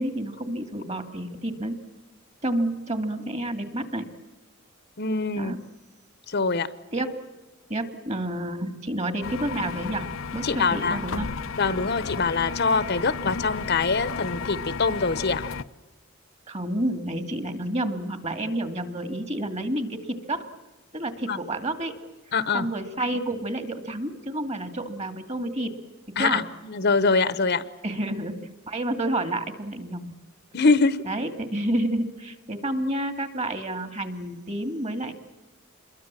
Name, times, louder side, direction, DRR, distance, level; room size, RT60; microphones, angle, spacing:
voice 1, 0.0-1.7 2.4-4.1 5.4-5.6 6.9-7.2 7.7-10.0 10.3-11.3 16.5-20.5 20.9-22.0 22.5-25.7 26.2-26.4 27.8-28.4 28.7-30.1 31.0-35.1, right 1 dB, 35° right, 8 dB, 2.4 m, -29 dB
voice 2, 5.0-5.6 6.3-6.7 10.4-11.0 11.6-15.4 21.3-21.4 22.3-22.7 26.2-27.6 30.5-31.0, left 4 dB, 55° left, 14 dB, 1.1 m, -24 dB
sound 1, 9.2-15.6, left 5 dB, 75° left, 0.8 m, -33 dB
27.5 x 22.5 x 7.6 m, 1.1 s
head